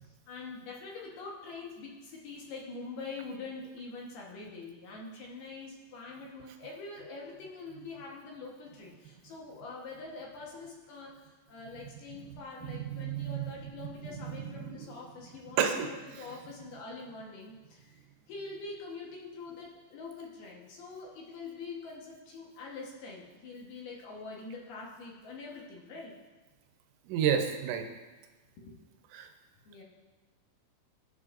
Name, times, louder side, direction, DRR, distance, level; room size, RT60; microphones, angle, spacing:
voice 1, 0.0-26.1 28.6-28.8 29.7-29.8, left 3 dB, 65° left, -3 dB, 2.8 m, -44 dB
voice 2, 12.7-13.4 14.3-14.5 15.6-15.9 27.1-27.9 29.1-29.3, right 8 dB, 80° right, 5 dB, 3.2 m, -30 dB
22.5 x 7.9 x 2.5 m, 1.2 s
omnidirectional pair, 5.5 m